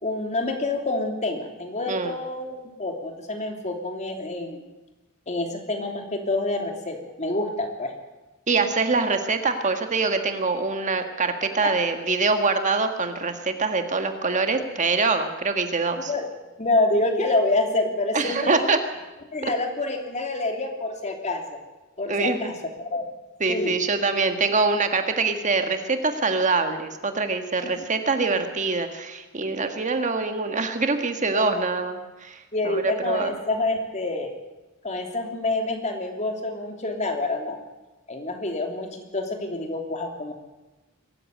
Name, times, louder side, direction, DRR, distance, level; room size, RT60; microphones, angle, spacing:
voice 1, 0.0-4.6 5.3-7.9 11.6-11.8 15.9-16.2 16.6-18.7 19.3-21.6 22.0-22.5 22.8-23.0 23.5-23.8 31.3-31.6 32.5-34.3 34.8-37.6 38.1-40.3, left 2 dB, 35° left, 3 dB, 3.1 m, -27 dB
voice 2, 8.5-16.1 18.1-18.8 19.4-19.5 22.1-22.5 23.4-33.3, right 3 dB, 35° right, 6 dB, 1.6 m, -24 dB
22.5 x 14.0 x 9.2 m, 1.1 s
head